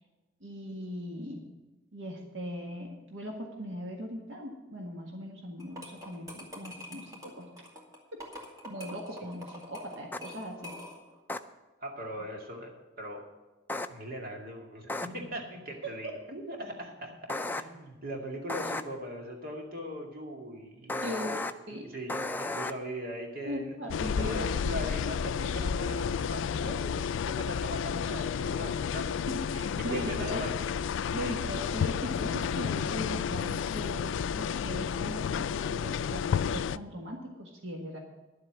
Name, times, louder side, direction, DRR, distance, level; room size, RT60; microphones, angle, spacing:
voice 1, 0.4-1.4 1.9-7.5 8.6-10.7 15.8-16.1 21.0-21.9 23.4-24.4 29.3-30.4 31.1-38.0, equal, 80° right, 1 dB, 1.7 m, -39 dB
sound 1, 5.6-11.2, equal, 20° right, 2.3 m, -46 dB
sound 2, 10.1-10.2 11.3-11.4 13.7-13.9 14.9-15.1 17.3-17.6 18.5-18.8 20.9-21.5 22.1-22.7, left 2 dB, 10° left, 0.4 m, -33 dB
voice 2, 11.8-13.3 13.9-23.8 24.2-29.3 29.9-30.5, equal, 50° right, 1 dB, 2.3 m, -40 dB
sound 3, 23.9-36.8, left 7 dB, 75° left, 0.3 m, -31 dB
11.0 x 7.8 x 7.2 m, 1.2 s
head